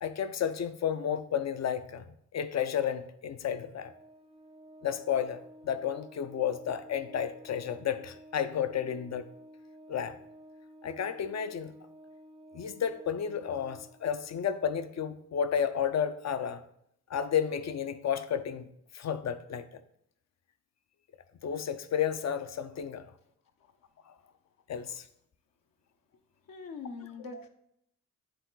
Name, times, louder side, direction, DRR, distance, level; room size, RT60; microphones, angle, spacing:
voice 1, 0.0-3.9 4.8-9.3 9.9-10.2 10.8-11.7 12.5-16.6 17.1-18.7 18.9-19.7 21.4-23.1 24.1-24.2 24.7-25.0 27.3-27.4, left 8 dB, 45° left, 0.7 m, -32 dB
Organ, 3.8-14.5, equal, 15° right, 0.6 m, -53 dB
voice 2, 26.5-27.5, left 4 dB, 60° left, 1.0 m, -42 dB
9.6 x 3.8 x 3.9 m
hypercardioid pair, 45°, 39 cm